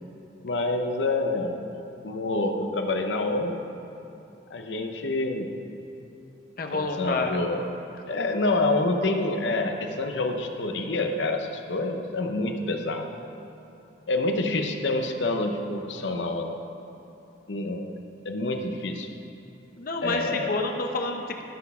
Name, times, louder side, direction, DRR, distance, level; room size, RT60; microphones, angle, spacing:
voice 1, 0.4-1.6 2.0-3.7 4.5-5.5 6.7-7.6 8.1-13.3 14.1-16.6 17.5-17.9 18.2-19.1 20.0-20.5, left 2 dB, 85° left, 4 dB, 0.8 m, -27 dB
voice 2, 6.6-7.3 19.8-21.4, left 3 dB, 55° left, 3 dB, 0.8 m, -28 dB
12.5 x 4.2 x 5.5 m, 2.9 s
head